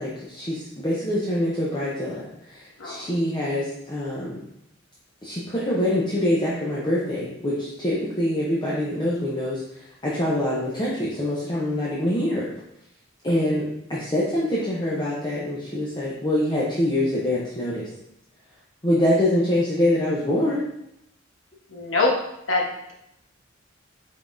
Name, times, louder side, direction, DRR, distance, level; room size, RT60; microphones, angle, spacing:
voice 1, 0.0-4.4 5.2-12.5 13.2-17.9 18.8-20.7, left 1 dB, 20° left, -7 dB, 0.7 m, -25 dB
voice 2, 21.7-22.1 22.5-22.9, left 3 dB, 70° left, -1 dB, 1.0 m, -24 dB
5.1 x 3.7 x 2.6 m, 0.81 s
head